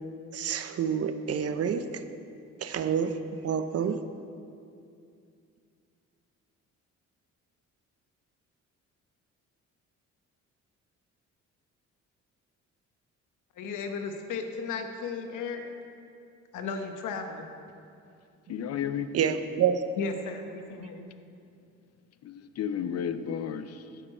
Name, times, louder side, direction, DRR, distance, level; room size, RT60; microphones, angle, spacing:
voice 1, 0.3-1.9 2.6-4.0 19.1-19.9, right 7 dB, 55° right, 10 dB, 0.6 m, -28 dB
voice 2, 13.6-15.6 16.5-17.5 20.0-21.1, left 4 dB, 80° left, 5 dB, 1.1 m, -35 dB
voice 3, 18.5-19.1 22.2-24.0, left 8 dB, 55° left, 11 dB, 0.6 m, -33 dB
14.0 x 6.7 x 4.4 m, 2.5 s
cardioid pair, 90°, 30 cm